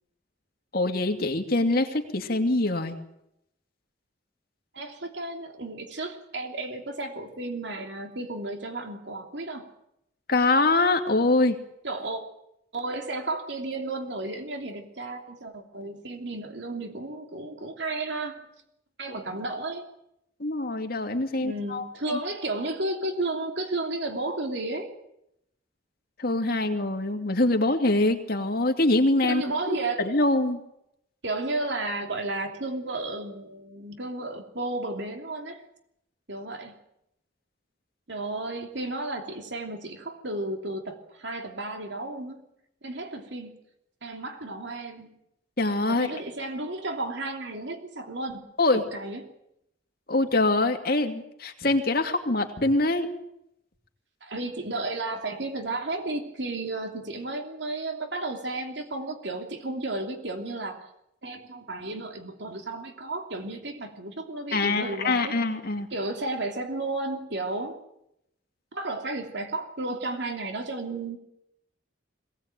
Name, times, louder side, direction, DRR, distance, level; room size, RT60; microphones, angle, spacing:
voice 1, 0.7-3.0 10.3-11.6 20.4-22.2 26.2-30.6 45.6-46.1 48.6-48.8 50.1-53.1 64.5-65.9, left 2 dB, 55° left, 5 dB, 2.6 m, -24 dB
voice 2, 4.7-9.6 11.8-12.2 12.7-18.4 19.0-19.9 21.3-24.9 29.2-30.0 31.2-35.6 36.3-36.8 38.1-42.4 42.8-43.5 44.0-45.1 45.9-49.2 54.2-60.8 61.2-65.3 65.9-67.8 68.7-71.2, right 2 dB, 65° right, 5 dB, 3.0 m, -33 dB
22.5 x 18.0 x 9.1 m, 0.80 s
head